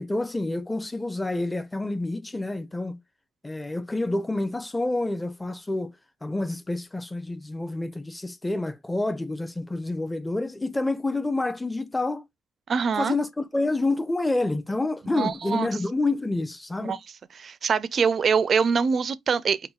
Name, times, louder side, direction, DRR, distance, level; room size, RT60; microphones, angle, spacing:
voice 1, 0.0-3.0 3.4-5.9 6.2-12.2 13.0-17.0, left 2 dB, 10° left, 0.6 m, -28 dB
voice 2, 12.7-13.1 15.2-15.7 16.8-17.0 17.4-19.6, right 6 dB, 50° right, 0.4 m, -24 dB
5.5 x 2.3 x 2.3 m
cardioid pair, 90°, 0 cm